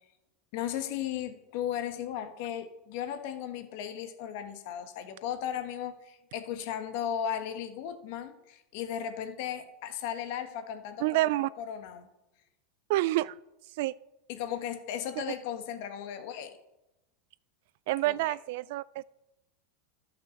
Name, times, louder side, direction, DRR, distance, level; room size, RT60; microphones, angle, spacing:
voice 1, 0.5-11.2 11.6-12.1 14.3-16.5 18.0-18.3, left 9 dB, 60° left, 8 dB, 1.4 m, -36 dB
voice 2, 11.0-11.5 12.9-13.3 13.8-13.9 17.9-19.0, right 18 dB, 65° right, 20 dB, 0.3 m, -28 dB
12.0 x 5.9 x 6.4 m, 0.93 s
hypercardioid pair, 115°, 0 cm